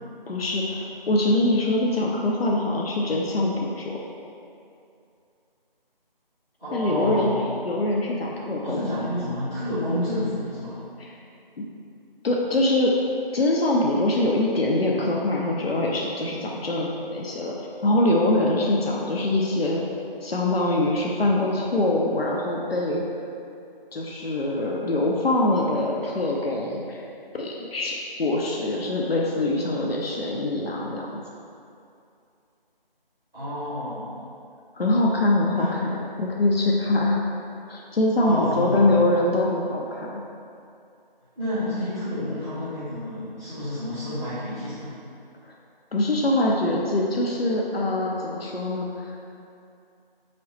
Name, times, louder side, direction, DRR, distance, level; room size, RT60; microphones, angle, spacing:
voice 1, 0.3-4.0 6.7-7.3 7.6-9.0 11.0-11.2 11.6-11.7 12.2-12.9 13.3-17.5 17.8-19.8 20.2-23.0 23.9-27.0 27.3-31.2 34.7-37.2 37.7-40.2 45.4-45.5 45.9-49.2, left 2 dB, 80° left, -2 dB, 0.6 m, -24 dB
voice 2, 6.6-7.4 8.6-10.8 33.3-34.1 35.5-35.7 38.2-38.8 41.3-44.9, left 1 dB, 10° right, -29 dB, 1.5 m, -29 dB
4.9 x 3.0 x 3.0 m, 2.5 s
figure-of-eight pair, 170°, 29 cm